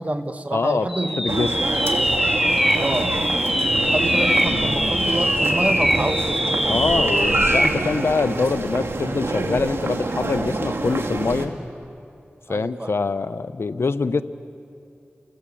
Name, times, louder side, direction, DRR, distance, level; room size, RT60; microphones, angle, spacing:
voice 1, 0.0-1.4 2.8-3.1 3.9-6.8 12.5-12.9, right 1 dB, 35° right, 7 dB, 2.0 m, -27 dB
voice 2, 0.5-0.9 1.2-1.5 6.7-11.5 12.5-14.2, left 4 dB, 75° left, 12 dB, 0.8 m, -24 dB
sound 1, 0.9-7.8, equal, ahead, 2.2 m, -22 dB
sound 2, 1.3-11.5, right 2 dB, 75° right, 2.2 m, -26 dB
30.0 x 22.0 x 8.5 m, 2.7 s
cardioid pair, 40°, 4 cm